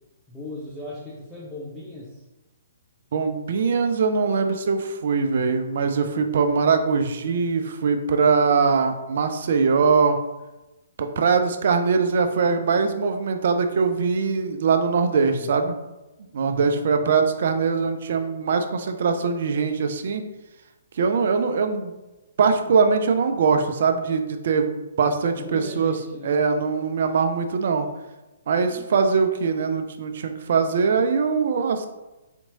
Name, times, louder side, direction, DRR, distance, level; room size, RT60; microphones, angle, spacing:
voice 1, 0.3-2.2 15.3-15.5 16.4-16.9 25.3-26.5 28.7-28.8, left 2 dB, 5° left, -7 dB, 0.7 m, -38 dB
voice 2, 3.1-10.2 11.0-15.8 16.3-20.2 21.0-21.9 22.4-26.0 26.2-27.9 28.5-31.9, right 5 dB, 55° right, 7 dB, 0.4 m, -22 dB
4.3 x 2.9 x 2.7 m, 1.0 s
figure-of-eight pair, 125°, 0 cm